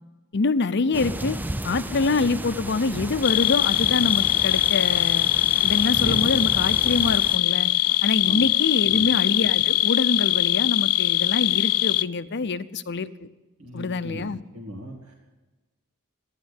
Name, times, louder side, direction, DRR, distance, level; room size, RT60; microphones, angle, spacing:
voice 1, 0.3-1.4 1.6-5.3 5.6-7.7 8.0-13.3 13.7-14.4, left 3 dB, 55° left, 13 dB, 0.7 m, -25 dB
sound 1, 0.9-7.4, right 1 dB, 10° right, 0.4 m, -33 dB
sound 2, 3.2-12.0, left 18 dB, 90° left, 0.4 m, -22 dB
voice 2, 8.8-9.1 13.6-14.3 14.5-15.1, equal, 80° right, -1 dB, 2.2 m, -39 dB
14.5 x 11.0 x 8.3 m, 1.2 s
head